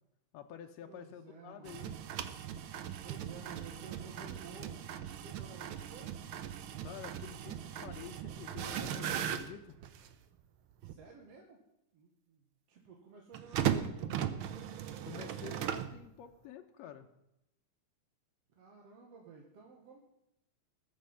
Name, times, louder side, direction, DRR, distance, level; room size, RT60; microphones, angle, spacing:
voice 1, 0.3-2.0 6.8-9.8 15.1-17.1, left 9 dB, 75° left, 4 dB, 1.8 m, -49 dB
voice 2, 0.9-1.9 3.0-6.2 10.8-11.6 11.9-14.0 18.6-20.0, right 4 dB, 60° right, 0 dB, 2.3 m, -54 dB
sound 1, 1.7-10.2 10.8-10.9 13.3-16.0, right 9 dB, 90° right, 1.1 m, -38 dB
20.0 x 7.8 x 5.6 m, 0.83 s
omnidirectional pair, 3.3 m